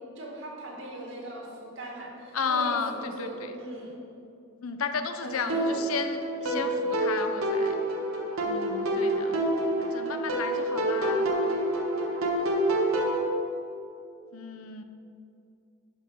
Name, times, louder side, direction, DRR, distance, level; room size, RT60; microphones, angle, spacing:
voice 1, 0.2-4.0 5.2-5.8 6.4-6.7, right 1 dB, 60° right, -2 dB, 2.0 m, -39 dB
voice 2, 2.3-3.6 4.6-7.7 8.4-9.4 9.8-11.3 14.3-14.8, left 5 dB, 85° left, 9 dB, 0.7 m, -33 dB
sound 1, 5.5-13.2, right 1 dB, 85° right, 1.4 m, -27 dB
12.0 x 5.4 x 5.3 m, 2.5 s
head